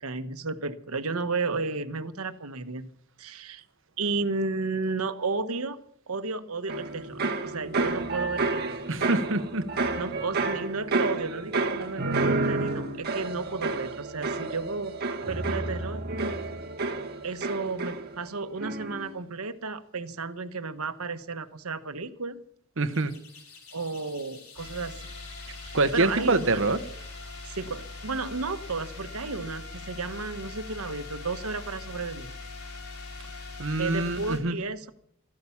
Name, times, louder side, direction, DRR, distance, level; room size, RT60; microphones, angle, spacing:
voice 1, 0.0-2.9 3.2-3.6 4.0-5.8 6.1-8.8 10.0-15.0 15.3-16.3 17.2-22.4 23.7-25.0 25.7-26.6 27.5-32.3 33.8-34.9, right 3 dB, 90° right, 1.2 m, -33 dB
sound 1, 6.7-18.3 18.6-19.1, right 3 dB, 50° right, 1.8 m, -30 dB
voice 2, 8.9-9.7 22.8-23.2 25.7-26.8 33.6-34.6, right 2 dB, 65° right, 1.2 m, -25 dB
sound 2, 22.9-29.3, left 5 dB, 85° left, 4.2 m, -51 dB
sound 3, 24.6-34.4, left 3 dB, 70° left, 4.5 m, -41 dB
14.5 x 13.5 x 7.2 m
head